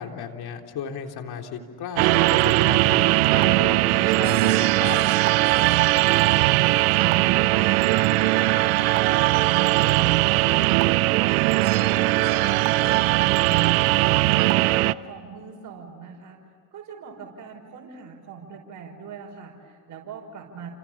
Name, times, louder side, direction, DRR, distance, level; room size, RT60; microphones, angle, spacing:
voice 1, 0.0-5.0, left 7 dB, 60° left, 4 dB, 3.7 m, -35 dB
sound 1, 2.0-14.9, right 18 dB, 90° right, 0.7 m, -20 dB
voice 2, 6.2-16.4 16.7-20.7, right 5 dB, 45° right, -1 dB, 5.8 m, -42 dB
29.0 x 27.5 x 7.4 m, 2.2 s
supercardioid pair, 75°, 42 cm